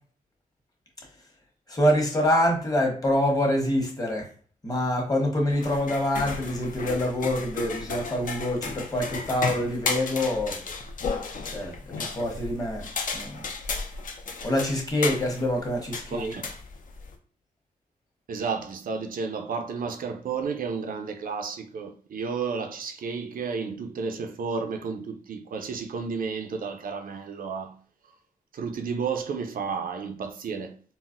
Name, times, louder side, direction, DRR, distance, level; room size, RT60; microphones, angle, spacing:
voice 1, 1.7-4.2 4.6-10.6 11.5-12.8 13.1-13.5 14.4-16.3, left 1 dB, 25° left, 1.1 m, -26 dB
sound 1, 5.5-17.1, left 4 dB, 60° left, 0.6 m, -34 dB
voice 2, 16.1-16.5 18.3-27.8 28.5-31.0, right 5 dB, 70° right, 0.4 m, -32 dB
3.9 x 2.0 x 2.5 m
cardioid pair, 95°, 15 cm